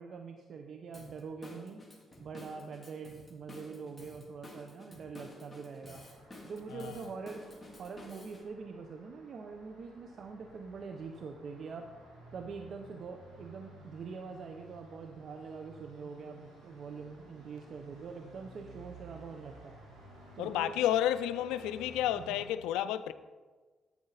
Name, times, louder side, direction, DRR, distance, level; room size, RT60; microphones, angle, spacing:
voice 1, 0.0-1.8 2.2-6.1 6.4-11.9 12.3-19.8 20.4-20.7 22.1-22.4, right 5 dB, 60° right, 0.8 m, -44 dB
Drum kit / Drum, 0.9-8.4, left 1 dB, 15° left, 2.5 m, -52 dB
Traffic noise roadway noise, 5.9-22.5, right 1 dB, 85° right, 2.7 m, -55 dB
voice 2, 20.4-23.1, left 11 dB, 85° left, 0.4 m, -31 dB
10.5 x 8.6 x 4.0 m
supercardioid pair, 55°, 0 cm